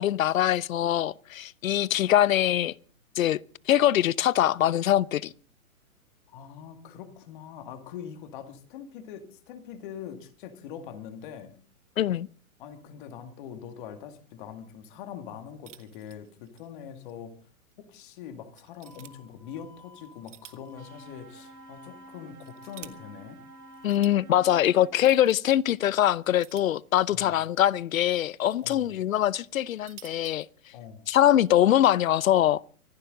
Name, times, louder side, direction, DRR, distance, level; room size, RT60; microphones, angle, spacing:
voice 1, 0.0-2.7 3.2-3.4 3.7-5.3 12.0-12.3 23.8-30.5 31.1-32.6, left 12 dB, 70° left, 0.7 m, -23 dB
voice 2, 6.3-11.6 12.6-17.3 17.8-23.4 27.1-27.4 28.6-29.0 30.7-31.1, left 8 dB, 35° left, 2.2 m, -43 dB
sound 1, 15.7-16.7 17.0-17.1 17.7-17.8 18.6-19.1 20.0-20.8 21.1-21.2 22.1-22.9 23.7-24.1 24.9-25.4 26.4-27.2 28.1-28.8 29.6-30.5, right 11 dB, 55° right, 1.4 m, -50 dB
sound 2, 18.8-23.8, left 3 dB, 5° left, 0.6 m, -55 dB
sound 3, 20.8-24.9, right 3 dB, 85° right, 3.5 m, -50 dB
24.5 x 11.5 x 3.8 m
hypercardioid pair, 150°, 43 cm